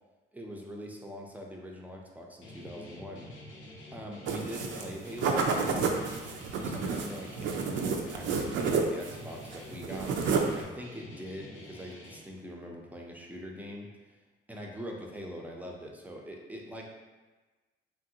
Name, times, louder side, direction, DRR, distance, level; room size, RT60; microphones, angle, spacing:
voice 1, 0.3-3.3 3.9-5.9 6.6-13.9 14.5-16.9, equal, 10° right, -1 dB, 0.5 m, -42 dB
Guitar, 2.4-12.2, left 1 dB, 75° left, 0.7 m, -48 dB
sound 1, 4.3-4.9 5.2-9.2 9.5-10.6, right 5 dB, 70° right, 0.4 m, -30 dB
3.0 x 2.5 x 2.8 m, 1.2 s
cardioid pair, 90°, 20 cm